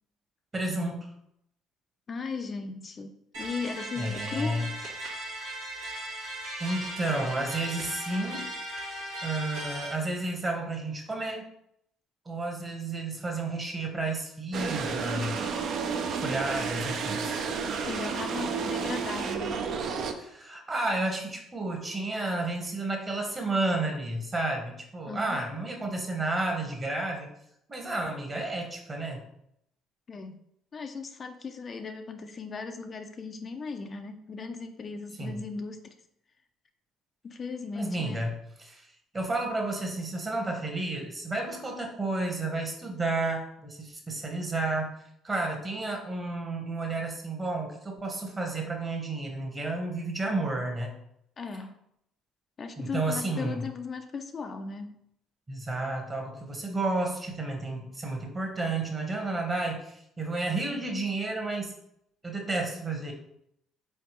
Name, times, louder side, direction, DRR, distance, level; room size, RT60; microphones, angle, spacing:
voice 1, 0.5-1.1 4.0-4.7 5.7-6.0 6.6-8.5 9.2-11.4 12.2-15.5 16.2-17.3 20.2-27.3 27.7-29.2 35.2-35.4 37.7-38.3 38.6-38.9 39.1-44.9 45.2-50.9 52.8-53.6 55.5-61.7 62.2-63.1, right 2 dB, 25° right, 2 dB, 1.1 m, -31 dB
voice 2, 2.1-4.7 17.9-19.6 25.1-25.4 30.1-30.4 30.7-35.9 37.2-38.2 51.4-51.8 52.6-55.0, left 4 dB, 40° left, 6 dB, 0.3 m, -37 dB
sound 1, 3.3-9.9, right 1 dB, 85° right, 1.3 m, -37 dB
sound 2, 14.5-20.1, right 5 dB, 60° right, 0.4 m, -31 dB
3.8 x 3.4 x 3.0 m, 0.75 s
supercardioid pair, 70°, 0 cm